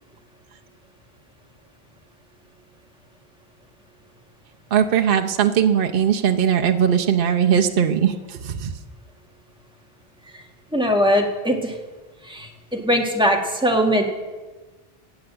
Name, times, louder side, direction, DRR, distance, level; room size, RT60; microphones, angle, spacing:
voice 1, 4.7-8.7, right 8 dB, 65° right, 4 dB, 0.9 m, -19 dB
voice 2, 10.7-11.8 12.2-14.0, equal, 5° right, 1 dB, 1.7 m, -21 dB
16.0 x 7.0 x 8.8 m, 1.3 s
omnidirectional pair, 1.0 m